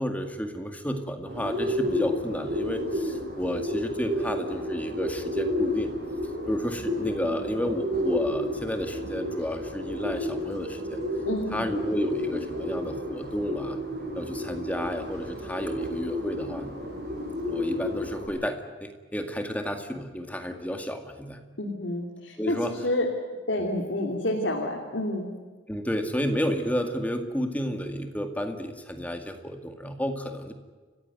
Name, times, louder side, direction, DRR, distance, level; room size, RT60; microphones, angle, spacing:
voice 1, 0.0-5.9 6.5-11.0 11.5-13.8 14.1-16.7 17.5-21.4 22.4-22.7 25.7-30.5, equal, 10° left, 6 dB, 2.0 m, -31 dB
Bird, 1.2-18.3, left 1 dB, 55° right, 7.6 m, -31 dB
voice 2, 11.2-11.6 21.6-23.1 23.5-25.3, left 1 dB, 70° left, 0 dB, 3.0 m, -29 dB
30.0 x 15.5 x 9.3 m, 1.4 s
head